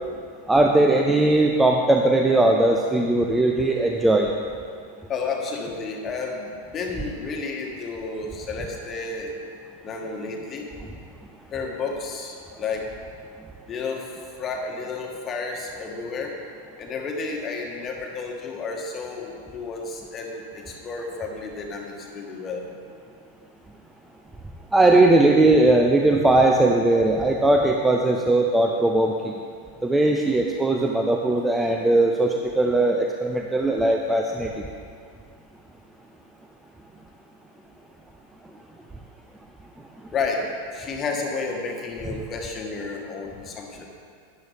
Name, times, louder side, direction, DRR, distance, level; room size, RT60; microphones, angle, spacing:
voice 1, 0.5-4.3 24.7-29.3 29.8-34.5, right 2 dB, 10° right, 2 dB, 0.6 m, -19 dB
voice 2, 5.1-9.3 9.8-10.7 11.5-12.9 13.7-14.1 14.4-16.4 16.8-22.6 40.1-40.5 40.7-43.9, left 4 dB, 25° left, 1 dB, 1.6 m, -31 dB
12.5 x 10.5 x 3.5 m, 2.2 s
figure-of-eight pair, 90°, 0 cm